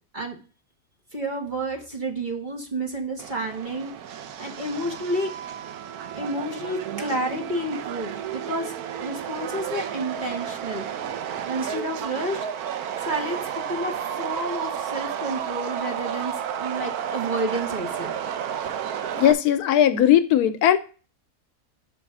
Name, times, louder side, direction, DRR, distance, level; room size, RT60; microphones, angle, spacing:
voice 1, 1.1-3.9 4.4-5.3 6.1-8.7 9.0-10.9 11.5-12.4 13.0-18.2 18.6-18.7, right 1 dB, 30° right, 1.3 m, -30 dB
Subway metro underground, 3.2-19.3, right 9 dB, 70° right, 1.1 m, -32 dB
voice 2, 19.1-20.8, left 10 dB, 75° left, 1.1 m, -18 dB
5.6 x 4.0 x 5.9 m
omnidirectional pair, 1.7 m